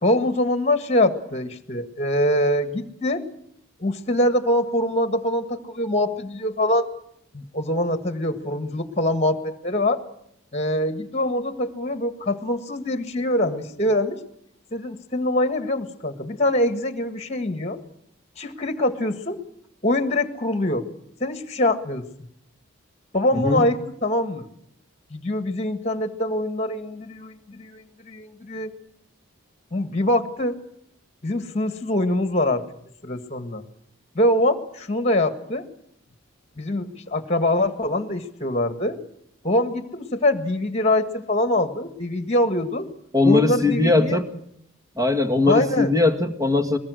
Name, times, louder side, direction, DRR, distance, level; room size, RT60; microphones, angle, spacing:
voice 1, 0.0-3.2 3.8-6.9 7.3-10.0 10.5-14.2 14.7-17.8 18.4-19.4 19.8-20.8 21.2-22.1 23.1-24.5 25.1-28.7 29.7-30.6 31.2-32.6 33.0-33.6 34.2-35.7 36.6-39.0 39.4-42.9 43.2-44.2 45.5-45.9, left 1 dB, 30° left, 8 dB, 1.7 m, -24 dB
voice 2, 23.3-23.7 43.1-44.3 45.0-46.8, left 3 dB, 15° right, 6 dB, 1.8 m, -20 dB
23.5 x 21.0 x 6.5 m, 0.71 s
head